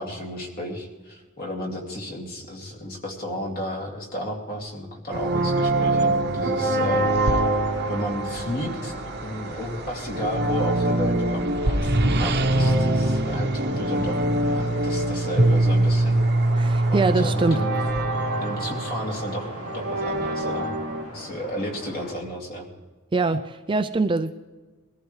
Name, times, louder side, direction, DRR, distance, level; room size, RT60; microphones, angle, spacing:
voice 1, 0.0-7.5 7.9-8.9 9.2-16.2 16.9-17.7 18.4-19.5 19.7-20.7 21.1-22.7, equal, 45° left, 0 dB, 2.6 m, -33 dB
sound 1, 5.1-21.0, right 1 dB, 50° right, 0.9 m, -23 dB
sound 2, 6.9-22.1, left 1 dB, 90° left, 2.2 m, -41 dB
voice 2, 16.5-17.7 23.1-24.3, right 3 dB, 20° right, 9 dB, 0.4 m, -23 dB
22.0 x 14.5 x 3.3 m, 1.3 s
head